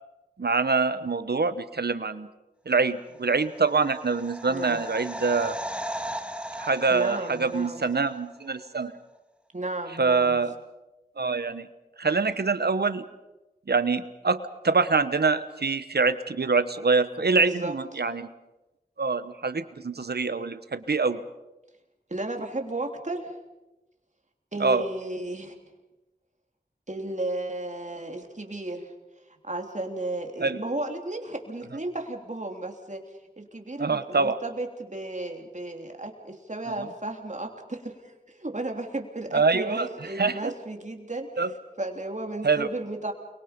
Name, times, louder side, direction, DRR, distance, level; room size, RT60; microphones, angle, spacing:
voice 1, 0.4-2.3 2.7-5.6 6.6-8.9 10.0-10.5 11.2-11.7 12.0-13.0 13.7-18.3 19.0-21.2 24.6-24.8 30.4-30.6 33.8-34.4 39.3-39.9 40.2-40.4 41.4-41.5 42.4-42.7, right 4 dB, 85° right, 13 dB, 1.0 m, -25 dB
sound 1, 3.3-8.2 8.5-8.6, equal, 5° right, 1.7 m, -37 dB
voice 2, 4.5-4.9 6.9-7.9 9.5-10.4 17.3-18.0 22.1-23.3 24.5-25.5 26.9-28.9 29.4-33.0 33.4-43.1, right 2 dB, 50° right, 3 dB, 3.3 m, -34 dB
29.0 x 23.0 x 5.2 m, 1.0 s
wide cardioid pair, 55°, 16 cm